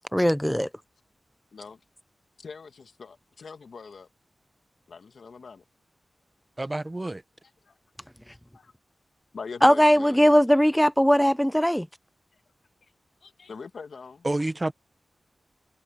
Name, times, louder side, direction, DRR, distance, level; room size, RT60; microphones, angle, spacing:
voice 1, 0.1-0.7 9.6-11.9, equal, 5° left, 0.7 m, -19 dB
voice 2, 2.4-4.1 4.9-5.6 7.6-7.8 8.3-8.7 9.3-10.3 13.2-14.3, left 5 dB, 80° left, 1.8 m, -43 dB
voice 3, 6.6-7.2 14.2-14.7, right 2 dB, 25° right, 1.2 m, -28 dB
cardioid pair, 55°, 0 cm